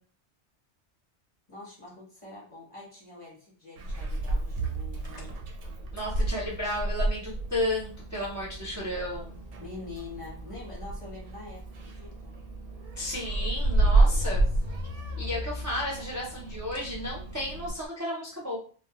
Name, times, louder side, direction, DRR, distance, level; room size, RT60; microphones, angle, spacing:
voice 1, 1.5-5.3 9.6-12.3 14.1-14.5, left 3 dB, 30° left, -4 dB, 0.8 m, -45 dB
Meow, 3.8-17.7, right 2 dB, 80° right, 0.9 m, -30 dB
sound 1, 5.0-17.9, left 1 dB, 50° left, 0.5 m, -43 dB
voice 2, 5.9-9.4 13.0-14.4 15.2-18.6, left 1 dB, 25° right, -5 dB, 0.4 m, -33 dB
2.1 x 2.1 x 2.9 m, 0.43 s
omnidirectional pair, 1.2 m